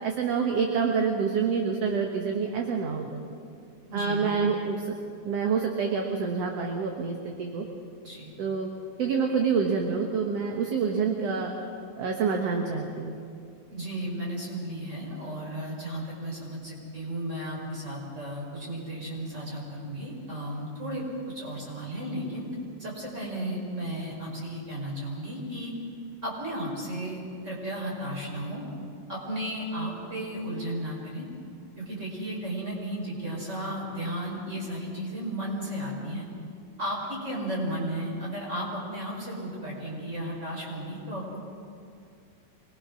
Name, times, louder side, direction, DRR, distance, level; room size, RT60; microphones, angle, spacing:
voice 1, 0.0-3.2 3.9-4.9 5.3-7.7 8.4-8.7 9.0-11.5 12.0-13.2, right 5 dB, 60° right, 2 dB, 2.3 m, -27 dB
voice 2, 3.9-4.4 8.0-8.3 13.7-22.5 22.8-25.7 26.2-27.2 27.4-28.6 29.1-31.3 31.8-36.3 36.8-41.4, right 1 dB, 20° right, -2 dB, 5.2 m, -34 dB
25.5 x 20.5 x 6.2 m, 2.4 s
omnidirectional pair, 3.4 m